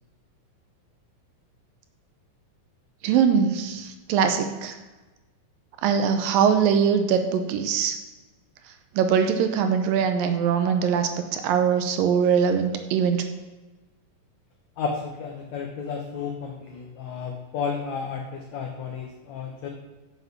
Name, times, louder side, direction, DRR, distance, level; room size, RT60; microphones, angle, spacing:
voice 1, 3.0-4.8 5.8-8.0 8.9-13.2, right 7 dB, 80° right, 7 dB, 2.4 m, -22 dB
voice 2, 14.8-19.7, left 5 dB, 70° left, 2 dB, 1.7 m, -32 dB
8.0 x 7.3 x 5.9 m, 1.2 s
omnidirectional pair, 4.2 m